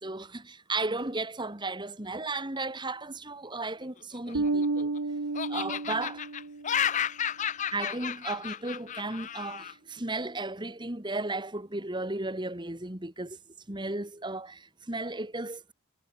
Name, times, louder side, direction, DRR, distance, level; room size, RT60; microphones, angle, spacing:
voice 1, 0.0-4.9 5.5-6.3 7.7-13.4 13.7-15.7, right 2 dB, 20° right, 2.2 m, -35 dB
Laughter, 4.1-5.0 5.4-9.7, left 8 dB, 35° left, 0.5 m, -32 dB
Bass guitar, 4.3-6.8, right 3 dB, 80° right, 1.1 m, -31 dB
head